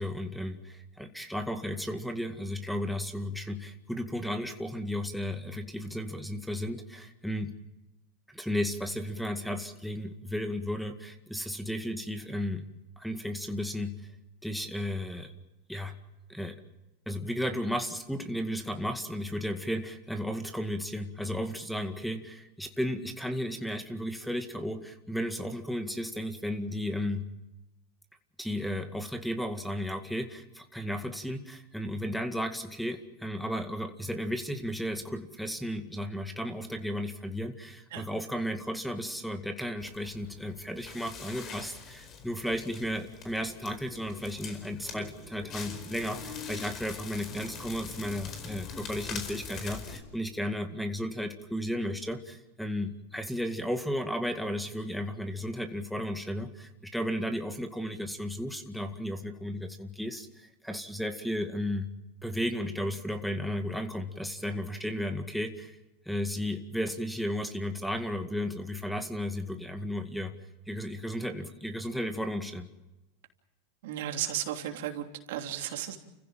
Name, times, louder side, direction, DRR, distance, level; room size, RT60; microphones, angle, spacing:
voice 1, 0.0-7.5 8.3-12.6 13.0-13.9 14.4-15.3 15.7-15.9 16.3-16.6 17.1-27.3 28.4-61.9 62.2-65.8 66.1-70.3 70.7-72.7, equal, ahead, 7 dB, 2.1 m, -34 dB
Crackle, 39.8-50.0, left 5 dB, 40° left, 4.7 m, -43 dB
voice 2, 73.8-76.0, right 11 dB, 75° right, 3 dB, 3.1 m, -34 dB
30.0 x 15.5 x 7.6 m, 0.99 s
hypercardioid pair, 115°, 0 cm